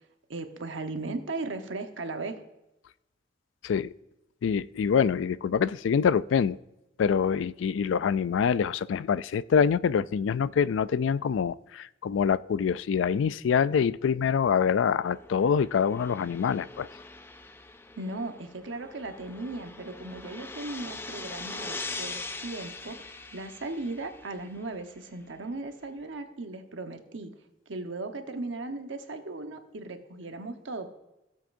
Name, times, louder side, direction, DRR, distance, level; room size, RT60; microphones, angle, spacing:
voice 1, 0.3-2.4 18.0-27.3 27.7-30.9, right 2 dB, 80° right, 6 dB, 1.1 m, -37 dB
voice 2, 4.4-6.6 7.0-16.9, left 7 dB, 80° left, 18 dB, 0.3 m, -25 dB
sound 1, 15.0-24.6, left 3 dB, 10° left, 0.4 m, -42 dB
16.5 x 7.6 x 2.6 m, 0.93 s
head